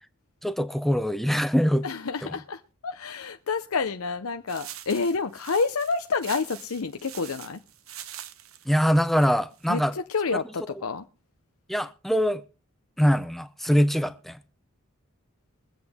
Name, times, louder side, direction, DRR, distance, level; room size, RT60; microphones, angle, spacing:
voice 1, 0.4-1.9 8.7-9.9 10.3-10.4 11.7-12.4 13.0-14.4, equal, ahead, 0.6 m, -23 dB
voice 2, 1.8-7.6 9.7-11.0, left 4 dB, 80° left, 0.7 m, -29 dB
sound 1, 4.5-9.7, right 11 dB, 75° right, 0.9 m, -44 dB
23.0 x 7.9 x 3.5 m
head